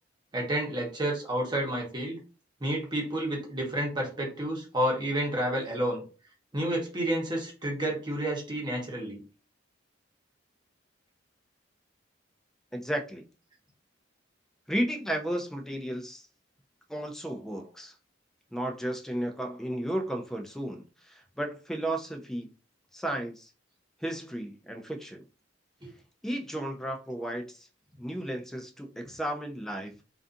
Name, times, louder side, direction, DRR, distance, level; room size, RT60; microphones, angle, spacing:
voice 1, 0.3-2.2 2.6-6.0 6.5-9.2 25.8-25.9, right 1 dB, 25° right, 0.9 m, -30 dB
voice 2, 12.7-13.2 14.7-16.2 16.9-17.9 18.5-22.5 22.9-23.5 24.0-25.2 26.2-27.7 28.0-30.0, right 1 dB, ahead, 0.3 m, -33 dB
2.4 x 2.4 x 2.5 m
head